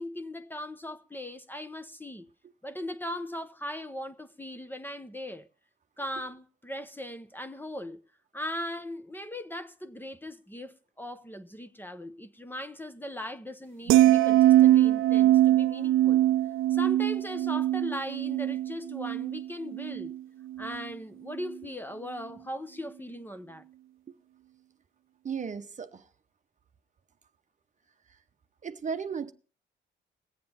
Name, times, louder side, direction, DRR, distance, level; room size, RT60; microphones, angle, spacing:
voice 1, 0.0-2.3 2.6-5.5 6.0-8.0 8.3-16.2 16.7-20.2 20.6-23.6, left 1 dB, 10° left, 0.9 m, -39 dB
sound 1, 13.9-20.2 20.5-20.8, right 14 dB, 85° right, 0.5 m, -22 dB
voice 2, 25.2-26.1 28.6-29.3, right 6 dB, 40° right, 0.9 m, -35 dB
20.5 x 7.6 x 4.3 m
cardioid pair, 90°, 20 cm